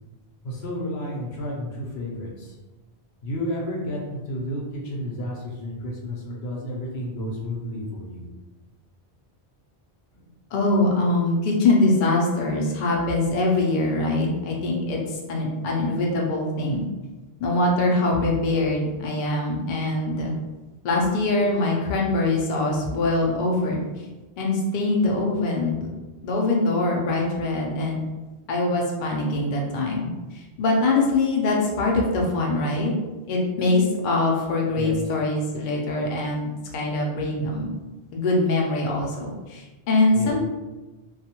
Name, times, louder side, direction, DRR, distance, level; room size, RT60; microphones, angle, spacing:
voice 1, 0.4-2.5 3.2-8.3 10.1-10.2 34.8-34.9 40.1-40.3, left 1 dB, 80° left, -2 dB, 0.9 m, -31 dB
voice 2, 10.5-16.8 17.4-20.3 20.8-23.8 24.4-25.9 26.2-28.0 28.5-32.9 33.3-37.6 38.1-40.5, left 2 dB, 55° left, -2 dB, 0.6 m, -23 dB
2.3 x 2.1 x 2.8 m, 1.2 s
omnidirectional pair, 1.1 m